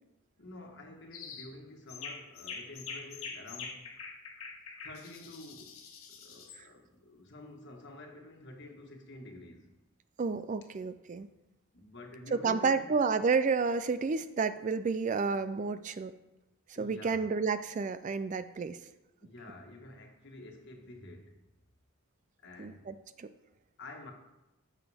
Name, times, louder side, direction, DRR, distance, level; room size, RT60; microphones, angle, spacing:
voice 1, 0.4-3.9 4.8-5.8 6.1-9.7 11.7-12.9 16.7-17.3 19.2-21.4 22.4-22.9 23.8-24.1, left 2 dB, 55° left, 2 dB, 1.5 m, -49 dB
sound 1, 1.1-1.5 1.9-6.6, left 5 dB, 75° left, 1.5 m, -44 dB
voice 2, 10.2-11.3 12.3-16.1 16.8-18.8 22.6-23.3, right 5 dB, 35° right, 12 dB, 0.3 m, -30 dB
14.0 x 6.1 x 3.5 m, 0.98 s
head